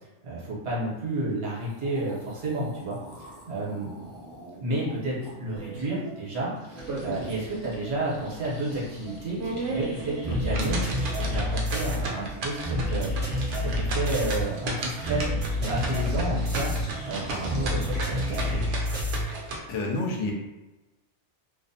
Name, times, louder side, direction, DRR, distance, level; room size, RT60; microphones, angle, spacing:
voice 1, 0.2-3.9 4.6-13.1 13.5-18.6, right 2 dB, 70° right, -6 dB, 1.1 m, -31 dB
sound 1, 1.3-1.4 1.6-7.8 8.0-19.1, equal, 30° left, 0.7 m, -44 dB
sound 2, 5.2-19.5, left 1 dB, 40° right, 0.6 m, -31 dB
sound 3, 6.8-7.5 7.9-8.0 8.5-8.6 9.2-19.6, right 3 dB, 85° right, 0.9 m, -34 dB
voice 2, 19.7-20.3, left 2 dB, 80° left, 0 dB, 0.9 m, -28 dB
2.5 x 2.0 x 2.6 m, 1.1 s
omnidirectional pair, 1.2 m